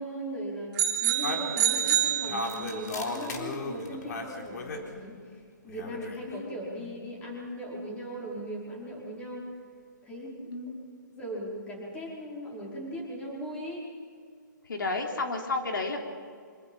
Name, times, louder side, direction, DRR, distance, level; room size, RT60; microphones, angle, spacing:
voice 1, 0.0-5.2 5.6-9.5 10.0-10.7 11.0-13.8, equal, 10° left, -3 dB, 5.1 m, -38 dB
sound 1, 0.8-2.9, right 11 dB, 25° right, 3.2 m, -27 dB
sound 2, 1.2-4.9 5.6-6.3, left 3 dB, 60° left, 3.9 m, -36 dB
voice 2, 10.5-10.8 14.7-16.1, left 3 dB, 85° left, 2 dB, 3.6 m, -32 dB
26.0 x 25.5 x 5.6 m, 2.1 s
hypercardioid pair, 160°, 11 cm